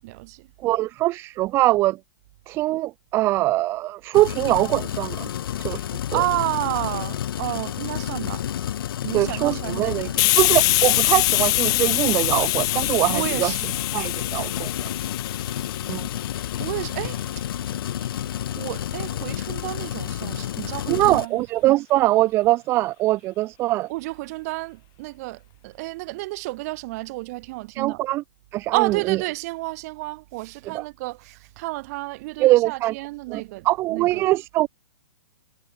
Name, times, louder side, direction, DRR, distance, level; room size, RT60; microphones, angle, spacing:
voice 1, 0.0-0.5 6.1-8.4 9.0-10.3 13.1-13.8 15.5-15.6 16.6-17.4 18.5-21.4 23.9-28.0 28.7-34.3, right 22 dB, 40° right, 6.9 m, -31 dB
voice 2, 0.6-2.0 2.5-5.3 5.6-5.8 6.1-6.2 9.1-13.5 13.9-14.9 15.9-16.1 20.9-23.9 27.7-28.2 28.5-29.2 30.7-30.8 32.4-33.0 33.3-34.7, right 17 dB, 20° right, 0.4 m, -22 dB
sound 1, 4.1-21.3, left 11 dB, 60° left, 4.7 m, -30 dB
Hiss, 10.2-17.6, left 25 dB, 30° left, 1.7 m, -24 dB
hypercardioid pair, 155°, 13 cm